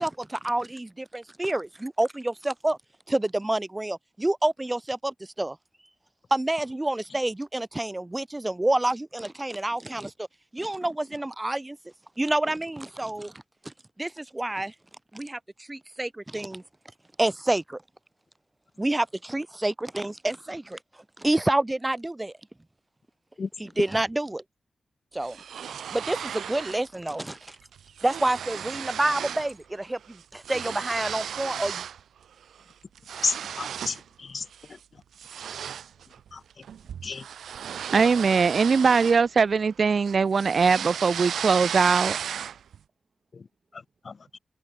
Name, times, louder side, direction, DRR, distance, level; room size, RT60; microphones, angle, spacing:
voice 1, 0.0-2.8 3.1-5.6 6.3-10.3 10.5-11.8 12.2-13.3 13.6-13.7 14.0-14.7 15.1-15.4 15.7-16.6 17.2-17.8 18.8-20.8 21.2-22.3 23.6-24.4 25.1-25.4 25.9-27.6 28.0-31.8, right 1 dB, 20° right, 4.6 m, -28 dB
sound 1, 25.2-26.9 27.2-27.5 27.7-29.5 29.8-32.0 32.4-34.1 34.5-34.7 35.2-39.7 40.0-42.8, right 8 dB, 90° right, 3.4 m, -35 dB
voice 2, 33.2-34.4 36.3-36.4 37.0-37.2 43.3-43.4 43.7-44.4, left 4 dB, 60° left, 0.4 m, -32 dB
voice 3, 37.9-42.2, right 5 dB, 65° right, 0.6 m, -21 dB
open air
cardioid pair, 45°, 0 cm